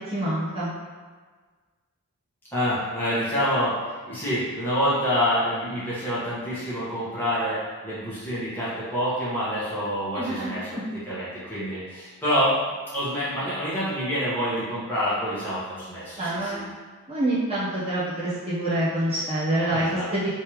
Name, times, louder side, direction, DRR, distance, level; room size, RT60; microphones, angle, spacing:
voice 1, 0.1-0.7 10.1-10.8 16.2-16.7 17.1-20.3, right 1 dB, 25° right, -11 dB, 0.9 m, -26 dB
voice 2, 2.5-10.7 11.1-12.5 12.9-16.6 19.7-20.1, equal, 10° left, -11 dB, 1.3 m, -27 dB
3.4 x 3.2 x 3.0 m, 1.5 s
head